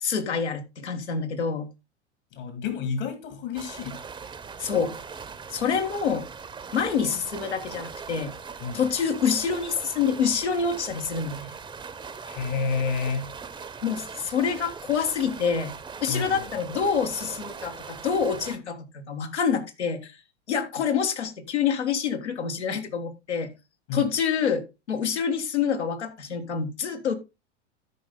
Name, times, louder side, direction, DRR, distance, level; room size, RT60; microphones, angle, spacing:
voice 1, 0.0-1.7 4.6-5.0 5.5-6.3 6.7-8.3 8.7-11.5 13.8-15.7 16.0-20.1 20.5-23.5 23.9-27.1, left 6 dB, 75° left, 1.7 m, -27 dB
voice 2, 2.3-4.0 8.6-8.8 12.2-13.3 16.1-16.4 23.9-24.1, left 5 dB, 50° left, 2.1 m, -29 dB
sound 1, 3.5-18.6, right 5 dB, 15° right, 0.8 m, -40 dB
13.5 x 5.4 x 3.8 m
figure-of-eight pair, 85°, 34 cm